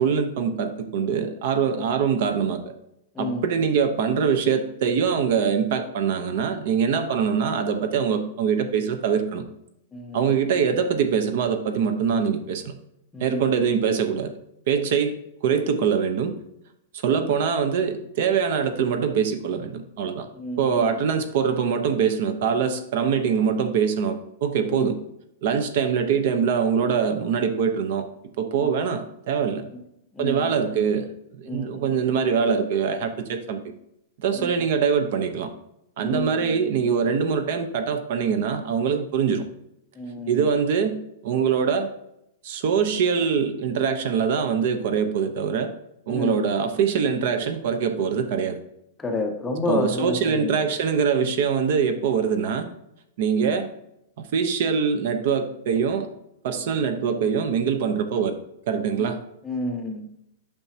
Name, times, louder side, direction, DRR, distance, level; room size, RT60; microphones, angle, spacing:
voice 1, 0.0-2.7 3.2-9.4 10.1-12.7 13.2-14.3 14.7-16.4 17.0-20.3 20.6-25.0 25.4-28.0 28.4-29.7 30.2-33.7 34.2-35.5 36.0-39.4 40.3-41.9 42.4-45.7 46.1-48.6 49.7-52.7 53.2-53.7 54.2-56.1 56.4-58.4 58.7-59.2, right 6 dB, 50° right, 9 dB, 0.8 m, -23 dB
voice 2, 3.2-3.5 9.9-10.2 13.1-13.5 20.4-20.9 24.7-24.9 28.5-28.7 30.1-30.6 31.5-32.0 34.4-34.6 36.0-36.6 40.0-40.5 46.1-46.4 49.0-50.6 59.0-59.2 59.4-60.1, left 2 dB, 10° left, 3 dB, 0.7 m, -30 dB
8.8 x 6.0 x 2.8 m, 0.79 s
supercardioid pair, 175°, 0 cm